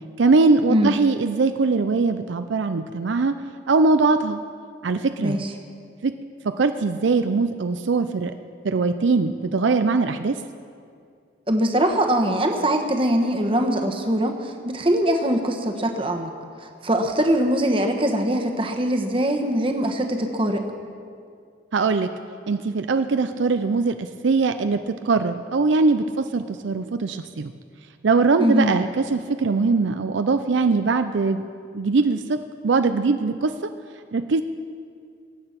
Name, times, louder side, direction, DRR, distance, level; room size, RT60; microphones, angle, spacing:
voice 1, 0.2-3.4 3.7-4.4 4.8-5.4 6.0-6.1 6.4-8.3 8.6-10.4 21.7-22.1 22.5-27.5 28.0-31.5 31.7-33.5 34.1-34.4, right 4 dB, 70° right, 9 dB, 0.5 m, -21 dB
voice 2, 11.5-16.3 16.6-20.6 28.4-28.7, right 1 dB, 30° right, 4 dB, 1.2 m, -22 dB
22.0 x 8.9 x 5.9 m, 2.3 s
head